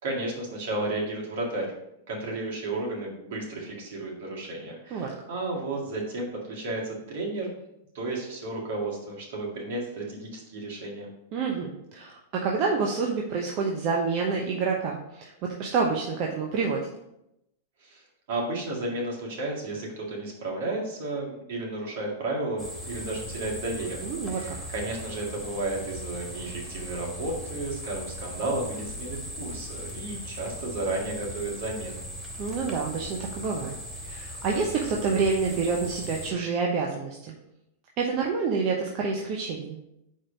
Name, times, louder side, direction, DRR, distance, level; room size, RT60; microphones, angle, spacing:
voice 1, 0.0-1.7 2.1-7.5 7.9-11.1 17.8-18.0 18.3-32.0, right 2 dB, 65° right, -2 dB, 2.0 m, -33 dB
voice 2, 11.3-16.9 24.0-24.6 32.4-33.7 34.0-37.3 38.0-39.8, right 4 dB, 45° right, 0 dB, 0.8 m, -28 dB
sound 1, 22.6-36.3, equal, ahead, 1.9 m, -39 dB
4.7 x 4.4 x 5.2 m, 0.84 s
hypercardioid pair, 100°, 0 cm